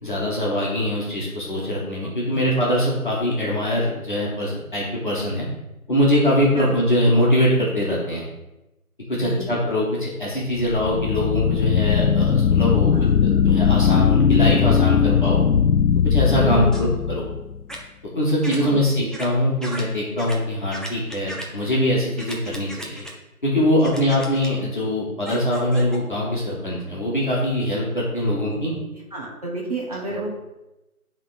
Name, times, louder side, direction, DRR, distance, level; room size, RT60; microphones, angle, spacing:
voice 1, 0.0-5.5 5.9-8.3 9.1-12.9 13.2-15.4 16.0-16.9 17.1-17.3 18.1-23.0 23.4-28.7, left 1 dB, 35° left, -6 dB, 1.7 m, -22 dB
voice 2, 2.0-2.5 6.6-6.7 9.2-9.5 12.9-13.4 16.4-16.8 18.4-19.1 23.8-24.0 28.2-28.8 29.1-30.3, right 2 dB, 25° right, -5 dB, 1.2 m, -31 dB
sound 1, 10.6-17.6, left 7 dB, 80° left, 0.6 m, -19 dB
sound 2, 16.7-16.9 17.7-17.8 18.4-18.6 19.1-19.3 19.6-19.8 20.2-20.4 20.7-21.5 22.2-23.1 23.8-24.5 25.2-26.0, right 1 dB, ahead, 0.5 m, -35 dB
9.8 x 3.7 x 4.1 m, 0.95 s
figure-of-eight pair, 160°, 44 cm